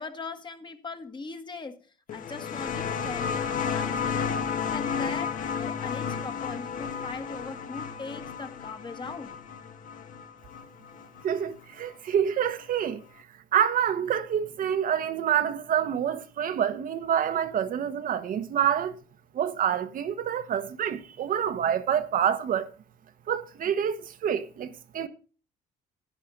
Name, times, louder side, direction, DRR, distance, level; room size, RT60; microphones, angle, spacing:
voice 1, 0.0-1.8 2.1-4.4 4.7-9.3, left 4 dB, 25° left, 1.6 m, -40 dB
sound 1, 2.1-11.4 12.5-12.6, left 6 dB, 50° left, 1.6 m, -32 dB
voice 2, 11.2-13.0 13.5-19.0 19.3-22.7 23.3-25.1, right 9 dB, 55° right, 1.1 m, -27 dB
10.5 x 10.5 x 3.9 m
cardioid pair, 110°, 17 cm